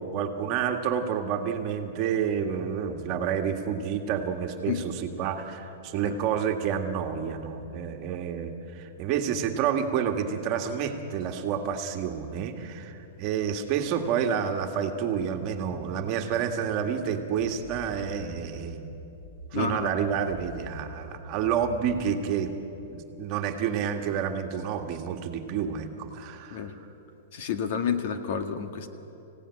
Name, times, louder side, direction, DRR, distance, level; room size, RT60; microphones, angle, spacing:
voice 1, 0.0-18.9 19.5-22.5 22.9-26.7, right 8 dB, 30° right, 4 dB, 1.8 m, -29 dB
sound 1, 17.0-22.4, left 1 dB, 20° left, 4.9 m, -46 dB
voice 2, 19.5-19.9 26.5-26.7 27.3-28.9, left 7 dB, 50° left, 7 dB, 1.8 m, -30 dB
25.5 x 17.0 x 9.9 m, 3.0 s
supercardioid pair, 165°, 0 cm